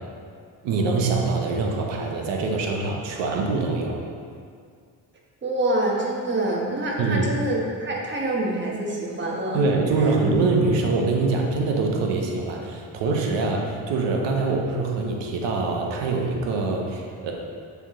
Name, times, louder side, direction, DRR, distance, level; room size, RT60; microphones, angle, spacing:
voice 1, 0.6-4.0 7.0-7.3 9.5-17.3, right 3 dB, 75° right, 1 dB, 1.0 m, -24 dB
voice 2, 5.4-9.6, right 1 dB, 25° right, -3 dB, 1.2 m, -26 dB
7.5 x 3.5 x 3.7 m, 2.1 s
cardioid pair, 95°, 44 cm